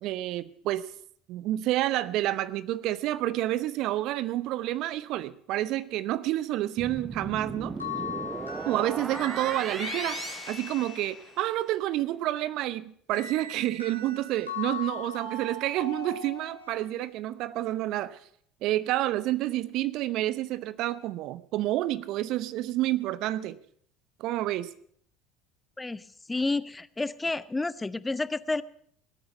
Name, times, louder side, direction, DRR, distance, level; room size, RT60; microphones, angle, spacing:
voice 1, 0.0-0.9 1.3-7.7 8.7-10.2 10.5-18.2 18.6-23.6 24.2-24.7, right 15 dB, 55° right, 17 dB, 0.7 m, -29 dB
sound 1, 6.8-11.5, right 4 dB, 25° right, 0.9 m, -37 dB
sound 2, 7.8-11.5 13.1-16.9, left 5 dB, 90° left, 2.8 m, -39 dB
voice 2, 26.3-28.6, left 3 dB, 15° left, 17 dB, 0.6 m, -30 dB
19.5 x 8.8 x 6.6 m, 0.62 s
figure-of-eight pair, 65°, 0 cm